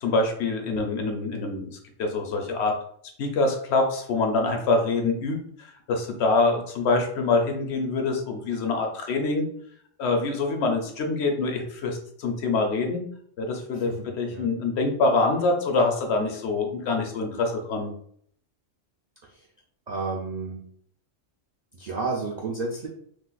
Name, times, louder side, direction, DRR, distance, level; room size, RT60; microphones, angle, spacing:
voice 1, 0.0-2.7 3.2-9.5 10.0-13.0 13.4-13.9 14.2-17.9, left 3 dB, 65° left, 3 dB, 0.8 m, -25 dB
voice 2, 13.7-14.5 19.2-19.5 19.9-20.6 21.7-22.9, right 3 dB, 60° right, -2 dB, 0.4 m, -32 dB
2.6 x 2.4 x 3.8 m, 0.64 s
omnidirectional pair, 1.3 m